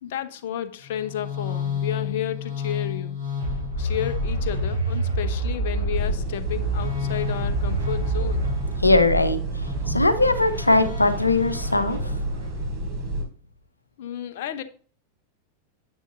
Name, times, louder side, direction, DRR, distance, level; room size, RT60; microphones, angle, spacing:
voice 1, 0.0-3.2 3.8-8.5 14.0-14.6, left 10 dB, 55° left, 1.0 m, -32 dB
sound 1, 0.8-12.7, equal, 85° right, 3.2 m, -29 dB
sound 2, 5.9-13.2, right 2 dB, 30° right, 4.1 m, -30 dB
voice 2, 8.8-12.2, left 2 dB, 85° left, 1.0 m, -21 dB
10.0 x 8.3 x 2.7 m
figure-of-eight pair, 90°, 0 cm